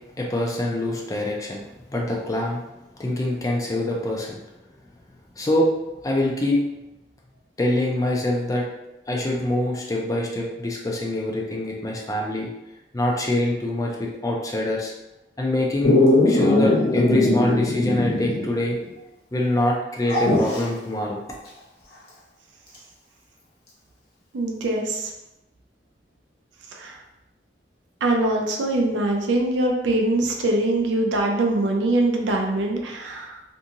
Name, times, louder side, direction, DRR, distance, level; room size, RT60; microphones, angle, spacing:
voice 1, 0.2-1.6 1.9-2.6 3.0-4.4 5.4-5.7 6.0-6.6 7.6-8.6 9.1-12.5 12.9-14.9 15.4-16.0 16.2-18.8 19.3-21.2, left 1 dB, 20° left, -2 dB, 0.4 m, -24 dB
Dog, 15.8-18.6 18.9-19.0 20.1-20.7 22.7-22.8, left 2 dB, 60° left, 0.7 m, -20 dB
voice 2, 24.3-25.1 26.7-27.0 28.0-33.4, right 2 dB, 85° right, 1 dB, 0.4 m, -23 dB
2.6 x 2.4 x 2.8 m, 0.95 s
head